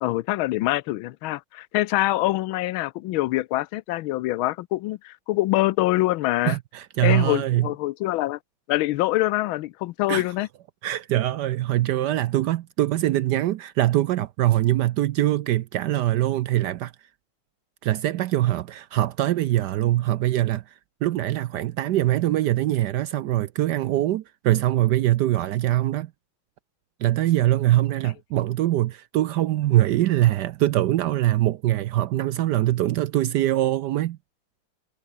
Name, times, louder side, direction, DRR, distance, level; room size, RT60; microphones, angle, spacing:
voice 1, 0.0-6.6 7.0-8.4 8.7-10.5, left 17 dB, 80° left, 1.4 m, -24 dB
voice 2, 6.4-7.7 10.1-10.2 10.8-16.9 17.8-20.6 21.0-26.1 27.0-34.2, right 14 dB, 70° right, 1.0 m, -23 dB
omnidirectional pair, 2.2 m